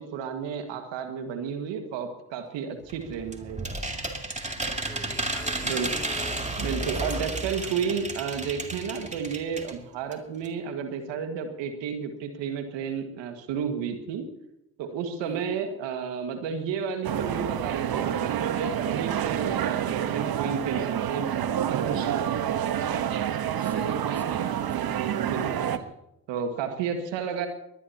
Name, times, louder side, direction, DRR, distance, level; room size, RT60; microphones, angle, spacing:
voice 1, 0.0-3.7 5.6-5.9 6.6-14.3 14.8-22.3 25.2-25.8 26.3-27.5, right 7 dB, 70° right, 6 dB, 2.0 m, -32 dB
sound 1, 2.9-9.8 10.1-10.2 10.4-10.5, right 2 dB, 15° right, 2.5 m, -32 dB
voice 2, 4.7-6.9 7.2-7.9 15.2-15.6 23.6-25.1, left 1 dB, 5° left, 2 dB, 4.2 m, -46 dB
sound 2, 17.0-25.8, right 9 dB, 50° right, 1.2 m, -28 dB
22.5 x 19.0 x 2.9 m, 0.83 s
hypercardioid pair, 40°, 45 cm